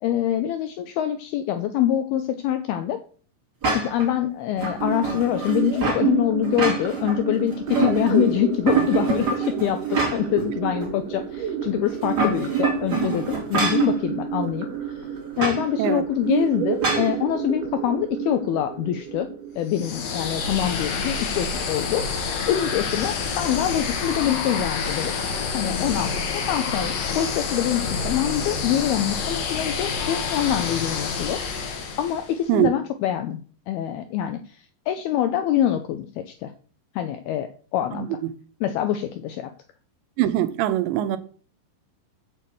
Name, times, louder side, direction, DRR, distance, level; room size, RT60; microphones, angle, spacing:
voice 1, 0.0-3.0 3.7-14.7 15.0-15.1 15.4-19.3 19.6-22.1 22.5-25.1 25.5-31.4 32.0-34.6 34.9-36.5 37.0-38.2 38.6-39.5, left 11 dB, 80° left, 2.2 m, -25 dB
sound 1, 3.6-4.1 4.6-6.1 6.4-7.2 7.5-8.3 8.7-10.4 10.8-10.9 11.9-13.9 15.4-15.6 16.8-17.1, right 4 dB, 25° right, 3.0 m, -25 dB
sound 2, 4.7-20.6, right 9 dB, 65° right, 3.6 m, -29 dB
sound 3, 19.7-32.4, left 5 dB, 60° left, 2.8 m, -28 dB
voice 2, 40.2-41.2, right 13 dB, 80° right, 3.0 m, -22 dB
7.2 x 6.5 x 7.7 m
omnidirectional pair, 5.2 m